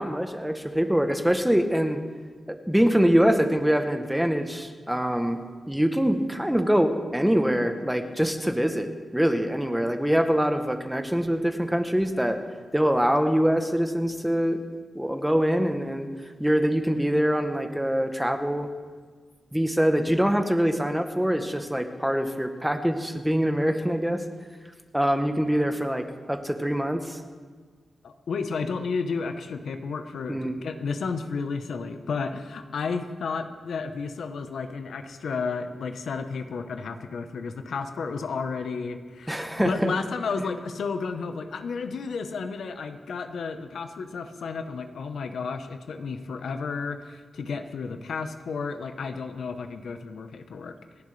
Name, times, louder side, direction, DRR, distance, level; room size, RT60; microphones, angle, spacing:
voice 1, 0.0-2.0 2.5-5.4 5.7-12.4 12.7-14.6 14.9-16.1 16.4-18.7 19.5-24.2 24.9-27.2 30.3-30.6 39.3-39.9, equal, 5° right, 6 dB, 0.9 m, -24 dB
voice 2, 28.0-50.8, left 5 dB, 85° left, 7 dB, 1.0 m, -32 dB
27.5 x 11.0 x 3.3 m, 1.5 s
wide cardioid pair, 160°, 0 cm